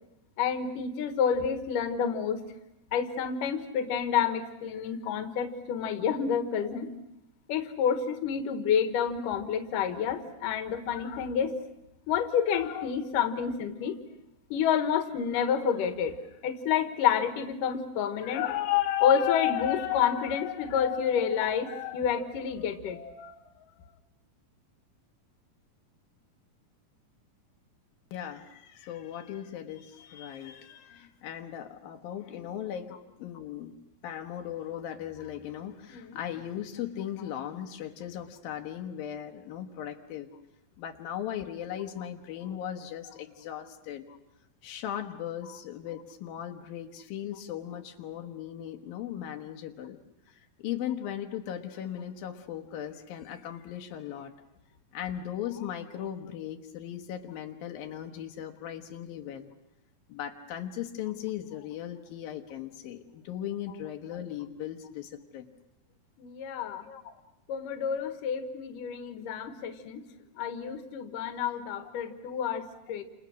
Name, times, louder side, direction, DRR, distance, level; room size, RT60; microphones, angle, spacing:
voice 1, 0.4-2.4 2.9-6.9 7.5-11.5 12.1-14.0 14.5-16.2 16.4-23.3 23.8-23.9 35.9-36.2 66.2-66.9 67.5-70.1 70.4-73.0, left 8 dB, 70° left, 9 dB, 3.0 m, -29 dB
voice 2, 28.1-33.8 34.0-40.3 40.8-44.0 44.6-50.0 50.3-54.3 54.9-59.5 60.1-65.5 66.8-67.2 70.7-70.8, left 10 dB, 85° left, 4 dB, 3.1 m, -38 dB
29.5 x 28.5 x 6.3 m, 0.89 s
omnidirectional pair, 4.0 m